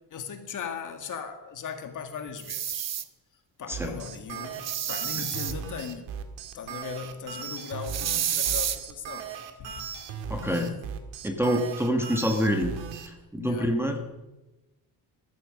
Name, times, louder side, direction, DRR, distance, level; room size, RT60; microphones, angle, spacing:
voice 1, 0.1-2.9 3.3-6.1 6.5-9.3 9.6-9.9 10.5-10.8 13.4-13.8, left 7 dB, 45° left, 6 dB, 1.9 m, -38 dB
sound 1, 2.4-3.0 4.5-5.5 7.8-8.8, right 10 dB, 35° right, 0.9 m, -29 dB
sound 2, 3.7-13.1, right 7 dB, 80° right, 2.1 m, -38 dB
voice 2, 10.3-10.7 11.2-14.0, equal, 5° right, 4 dB, 1.3 m, -27 dB
14.0 x 14.0 x 6.4 m, 1.0 s
cardioid pair, 165°, 44 cm